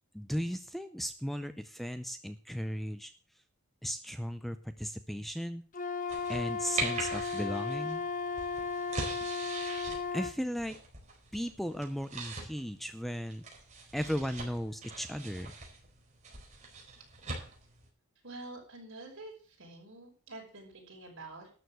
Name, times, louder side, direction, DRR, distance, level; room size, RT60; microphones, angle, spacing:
voice 1, 0.1-3.1 3.8-5.6 6.3-8.0 10.1-10.8 11.3-13.4 13.9-15.6, equal, ahead, 10 dB, 0.5 m, -36 dB
Wind instrument woodwind instrument, 5.7-10.4, left 5 dB, 35° left, 1.1 m, -35 dB
sound 1, 6.1-17.9, right 3 dB, 35° right, 4.5 m, -42 dB
voice 2, 18.2-21.5, right 2 dB, 60° right, 0 dB, 5.7 m, -47 dB
12.5 x 7.0 x 8.0 m, 0.41 s
head